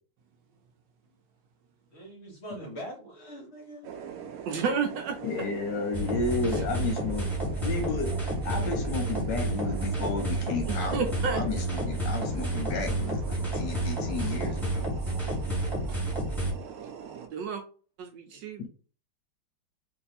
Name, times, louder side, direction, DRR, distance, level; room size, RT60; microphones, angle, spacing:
voice 1, 1.9-3.9 18.3-18.4, equal, 40° left, 1.0 m, -42 dB
sound 1, 3.8-17.3, right 7 dB, 90° right, 0.7 m, -42 dB
voice 2, 4.5-5.6 6.5-6.6 10.7-11.4 15.9-16.0 17.3-17.6 18.0-18.7, right 5 dB, 70° right, 1.1 m, -32 dB
voice 3, 5.2-7.3 7.6-8.1 8.4-10.9 11.3-14.9 18.6-18.7, left 3 dB, 70° left, 1.2 m, -32 dB
sound 2, 5.9-16.5, right 1 dB, ahead, 1.3 m, -30 dB
3.1 x 2.6 x 4.1 m
omnidirectional pair, 2.2 m